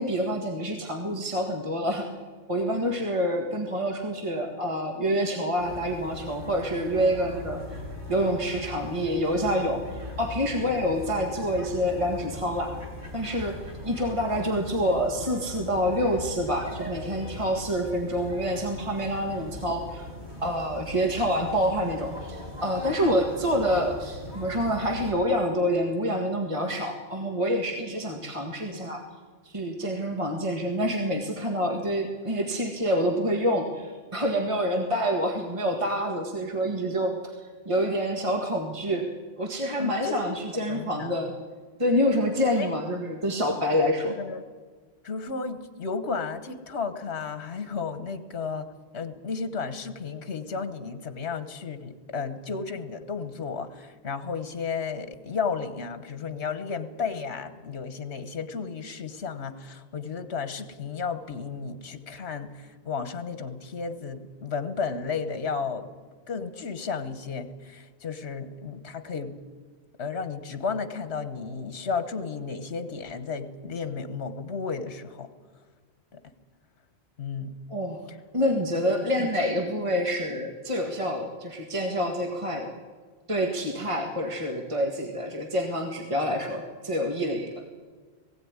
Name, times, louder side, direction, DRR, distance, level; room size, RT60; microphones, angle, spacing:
voice 1, 0.0-2.1 2.5-7.6 8.1-9.8 10.2-12.7 13.1-13.6 13.8-20.1 20.4-29.0 29.4-37.3 37.7-39.1 39.4-41.3 41.8-44.1 77.7-78.0 78.3-82.7 83.3-87.5, equal, 30° right, 2 dB, 1.9 m, -27 dB
sound 1, 5.6-25.1, left 1 dB, 45° right, 4.8 m, -40 dB
voice 2, 39.8-41.2 42.3-42.7 44.1-44.4 45.0-48.7 48.9-65.9 66.3-69.4 70.0-75.3 76.1-76.2 77.2-77.5, left 5 dB, 75° left, 10 dB, 1.4 m, -33 dB
19.5 x 16.0 x 9.7 m, 1.5 s
omnidirectional pair, 1.1 m